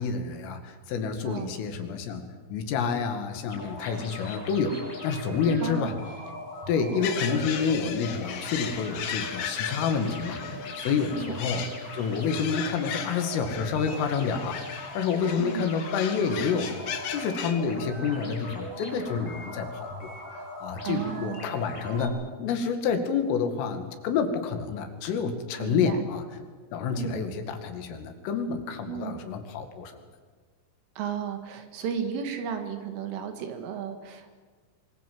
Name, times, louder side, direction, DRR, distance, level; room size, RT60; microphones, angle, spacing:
voice 1, 0.0-6.0 6.7-10.4 10.8-20.1 20.6-26.2 26.7-29.9, left 5 dB, 80° left, 6 dB, 4.7 m, -29 dB
sound 1, 3.5-22.1, left 1 dB, 35° left, 9.3 m, -40 dB
voice 2, 5.6-6.0 11.1-11.4 15.4-15.8 20.8-21.5 25.6-26.0 26.9-27.3 28.9-29.2 31.0-34.4, right 8 dB, 75° right, 6 dB, 4.6 m, -34 dB
sound 2, 7.0-17.5, left 8 dB, 65° left, 3.6 m, -37 dB
24.5 x 24.5 x 7.8 m, 1.5 s
omnidirectional pair, 5.8 m